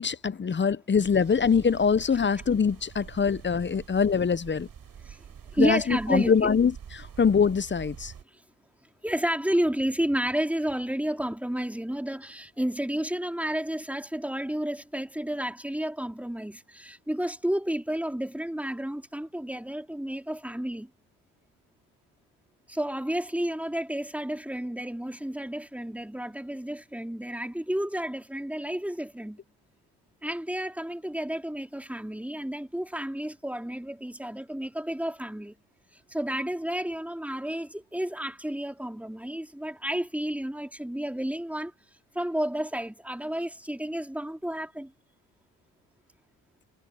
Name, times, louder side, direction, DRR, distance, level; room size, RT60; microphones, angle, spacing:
voice 1, 0.0-4.7 5.6-6.7 7.2-8.1, left 6 dB, 25° left, 0.9 m, -23 dB
sound 1, 1.0-8.2, right 8 dB, 50° right, 7.2 m, -46 dB
voice 2, 5.5-6.5 8.3-8.4 9.0-20.9 22.7-29.4 30.2-35.5 35.9-41.7 42.1-44.9, right 1 dB, 5° right, 3.9 m, -31 dB
supercardioid pair, 60°, 42 cm